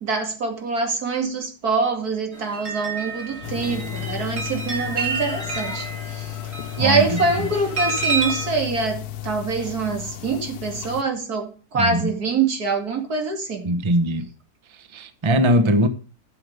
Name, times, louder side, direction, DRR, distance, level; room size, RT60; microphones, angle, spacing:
voice 1, 0.0-13.7, right 4 dB, 75° right, 2.9 m, -25 dB
sound 1, 2.3-8.5, right 3 dB, 40° right, 4.6 m, -29 dB
sound 2, 3.4-11.0, left 13 dB, 80° left, 1.3 m, -34 dB
voice 2, 6.8-7.2 11.7-12.1 13.6-14.3 14.7-15.9, equal, 20° right, 0.9 m, -21 dB
12.5 x 7.1 x 5.3 m
omnidirectional pair, 1.7 m